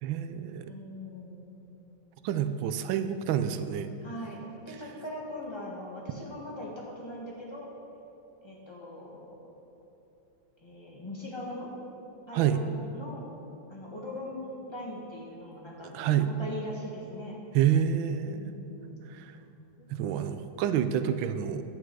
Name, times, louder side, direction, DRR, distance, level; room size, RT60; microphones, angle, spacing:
voice 1, 0.0-0.7 2.2-3.9 12.3-12.6 15.9-16.3 17.5-18.5 19.1-19.3 19.9-21.6, right 9 dB, 90° right, 10 dB, 1.4 m, -28 dB
voice 2, 0.7-1.5 4.0-7.7 8.4-9.4 10.6-11.7 12.3-13.3 13.7-17.4 18.3-19.1 19.4-19.9, left 1 dB, 15° left, -4 dB, 1.6 m, -41 dB
11.0 x 9.0 x 4.7 m, 2.9 s
omnidirectional pair, 2.1 m